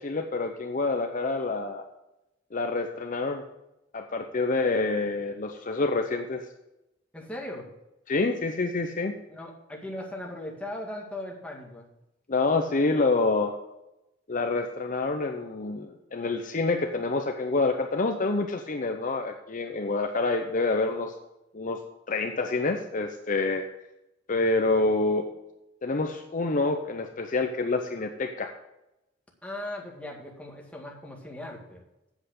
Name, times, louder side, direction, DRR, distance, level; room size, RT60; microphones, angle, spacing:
voice 1, 0.0-1.9 2.5-3.4 3.9-6.4 8.1-9.1 12.3-13.6 14.3-21.1 21.5-21.8 22.1-23.7 24.3-25.3 25.8-28.5, left 3 dB, 45° left, 5 dB, 0.7 m, -27 dB
voice 2, 7.1-7.7 9.3-11.9 29.4-31.8, left 1 dB, 5° left, -1 dB, 1.9 m, -38 dB
8.1 x 7.7 x 6.6 m, 0.91 s
head